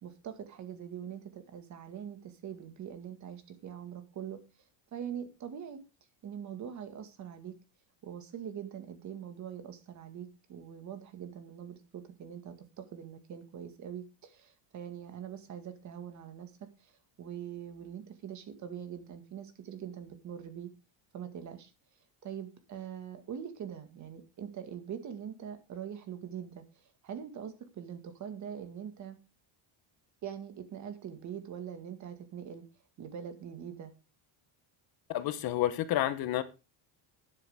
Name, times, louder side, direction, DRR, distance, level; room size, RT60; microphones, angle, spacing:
voice 1, 0.0-4.4 4.9-5.8 6.2-7.5 8.0-16.5 16.8-16.9 17.2-20.7 21.1-21.7 22.2-29.2 30.2-32.6 33.0-33.9, right 8 dB, 35° right, 8 dB, 1.9 m, -43 dB
voice 2, 35.1-36.4, left 13 dB, 50° left, 13 dB, 1.1 m, -30 dB
12.0 x 9.9 x 3.6 m, 0.30 s
cardioid pair, 170°, 48 cm